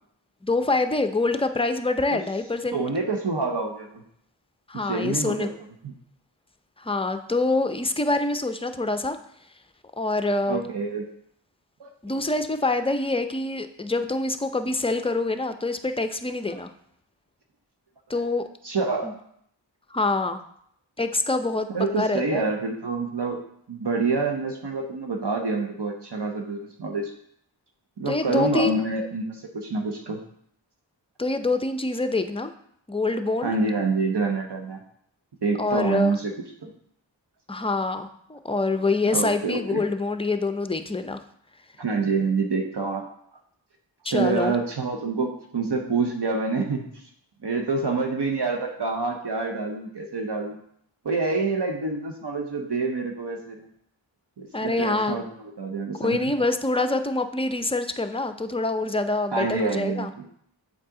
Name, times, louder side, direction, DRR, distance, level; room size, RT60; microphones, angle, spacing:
voice 1, 0.4-2.8 4.7-5.5 6.8-9.2 10.0-10.7 12.0-16.7 18.1-18.4 19.0-19.2 19.9-20.4 21.0-22.4 28.1-28.8 31.2-32.5 32.9-33.6 35.6-36.2 37.5-41.2 44.0-44.6 54.5-55.2 56.0-60.1, left 2 dB, 15° left, 9 dB, 0.5 m, -25 dB
voice 2, 2.7-3.9 4.9-5.5 10.5-11.0 11.8-11.9 16.5-16.6 18.6-19.1 21.7-23.4 23.7-27.1 28.0-30.2 33.4-34.8 35.4-36.3 36.6-36.7 39.1-39.8 41.8-43.1 44.0-46.9 47.4-50.6 51.0-53.7 54.4-55.2 55.6-56.2 59.3-60.2, right 4 dB, 60° right, 2 dB, 0.9 m, -27 dB
7.5 x 4.1 x 3.7 m, 0.68 s
wide cardioid pair, 40°, 46 cm